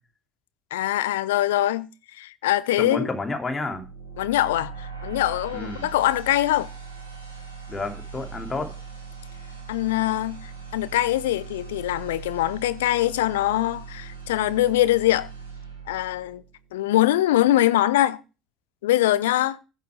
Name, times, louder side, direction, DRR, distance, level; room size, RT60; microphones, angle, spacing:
voice 1, 0.7-3.1 4.2-6.7 9.7-15.3 15.9-16.4 16.7-18.2 18.8-19.6, left 14 dB, 70° left, 0.7 m, -23 dB
voice 2, 2.8-3.8 5.5-5.8 7.7-8.7, left 2 dB, 25° left, 2.7 m, -30 dB
sound 1, 3.6-16.7, right 6 dB, 90° left, 2.1 m, -40 dB
10.5 x 6.8 x 4.7 m
figure-of-eight pair, 60°, 0 cm